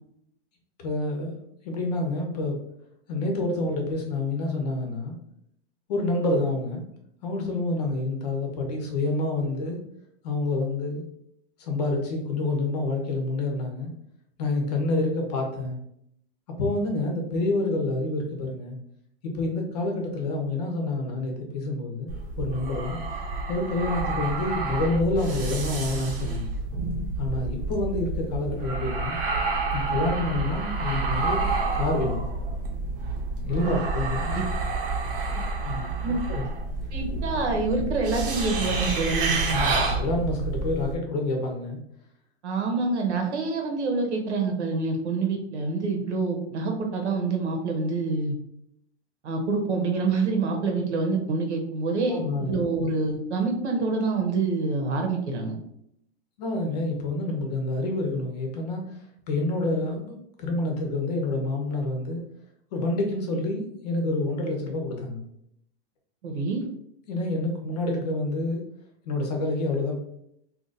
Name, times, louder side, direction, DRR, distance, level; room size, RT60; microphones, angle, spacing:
voice 1, 0.8-1.4 1.6-2.6 3.1-5.1 5.9-6.8 7.2-9.8 10.2-11.0 11.6-13.9 14.4-15.8 16.6-18.8 19.2-22.1 22.4-26.5 27.2-29.2 29.7-31.4 31.7-32.3 33.4-34.4 35.1-35.3 35.6-36.4 39.5-41.8 52.1-52.6 56.4-59.0 59.3-62.2 62.7-65.2 67.1-68.6 69.0-70.0, left 2 dB, 40° left, 2 dB, 0.7 m, -28 dB
sound 1, 22.1-40.9, right 3 dB, 55° right, 0.9 m, -29 dB
voice 2, 36.9-39.6 42.4-48.3 49.2-55.6 66.2-66.6, right 3 dB, 85° right, 2 dB, 1.1 m, -26 dB
2.8 x 2.5 x 3.9 m, 0.74 s
supercardioid pair, 175°, 34 cm